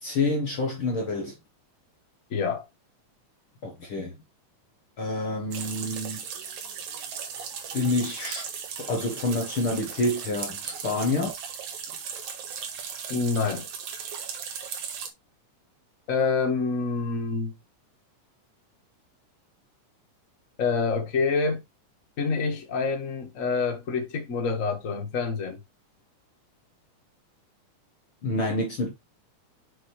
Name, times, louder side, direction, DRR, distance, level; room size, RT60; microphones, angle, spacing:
voice 1, 0.0-1.4 3.6-4.1 5.0-6.2 7.7-8.5 8.8-11.3 28.2-28.9, left 2 dB, 50° left, 1.7 m, -28 dB
voice 2, 2.3-2.7 13.1-13.6 16.1-17.5 20.6-21.6 22.2-25.6, left 4 dB, 35° left, 1.5 m, -27 dB
sound 1, 5.5-15.1, right 7 dB, 70° right, 2.7 m, -37 dB
6.3 x 5.9 x 3.3 m
omnidirectional pair, 3.6 m